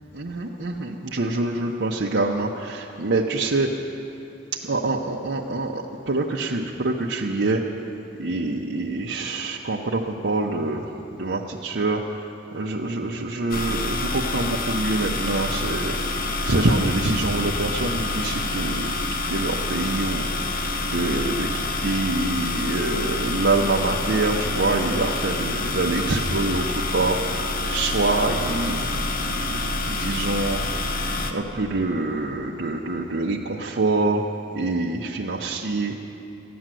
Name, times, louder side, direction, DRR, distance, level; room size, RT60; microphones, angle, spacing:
voice 1, 0.1-3.7 4.6-7.6 8.2-10.9 11.2-16.1 16.4-18.9 19.3-26.7 26.9-28.9 29.2-34.2 34.5-36.0, right 2 dB, 75° right, -3 dB, 0.8 m, -26 dB
sound 1, 13.5-31.3, left 2 dB, 50° left, 1.0 m, -27 dB
14.5 x 10.5 x 7.6 m, 2.9 s
head